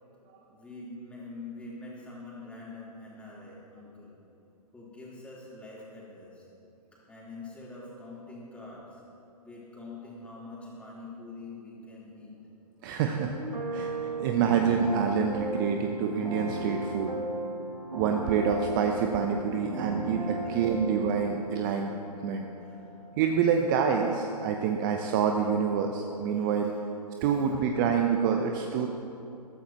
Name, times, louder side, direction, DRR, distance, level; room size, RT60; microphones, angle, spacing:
voice 1, 0.5-4.2 4.7-6.5 6.9-9.0 9.4-12.4 13.0-13.4 19.6-19.9 20.4-20.9 22.6-22.8 26.3-26.8 27.2-27.3, left 2 dB, 5° left, -7 dB, 3.8 m, -45 dB
voice 2, 12.8-13.3 13.7-13.9 14.2-17.1 17.9-21.9 22.2-22.5 23.2-26.7 27.2-28.9, right 7 dB, 30° right, 3 dB, 0.8 m, -27 dB
sound 1, 13.4-23.5, right 2 dB, 80° right, 2.4 m, -36 dB
22.0 x 13.0 x 3.0 m, 2.8 s
figure-of-eight pair, 125°, 20 cm